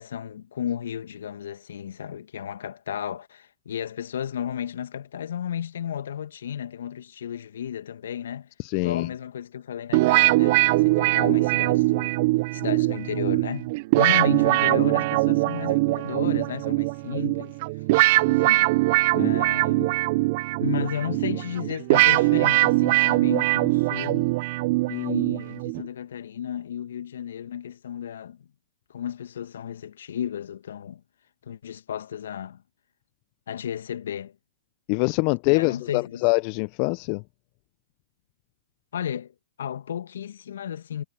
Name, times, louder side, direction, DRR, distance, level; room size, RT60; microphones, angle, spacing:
voice 1, 0.0-12.2 12.5-17.5 18.2-18.7 19.1-20.0 20.6-24.3 24.9-28.5 28.9-31.0 31.4-32.6 33.5-34.4 35.5-36.2 38.9-41.0, left 9 dB, 65° left, 1.9 m, -33 dB
voice 2, 8.6-9.1 19.1-19.4 34.9-37.2, left 31 dB, 40° left, 0.8 m, -24 dB
sound 1, 9.9-25.9, right 22 dB, 45° right, 1.1 m, -22 dB
hypercardioid pair, 120°, 0 cm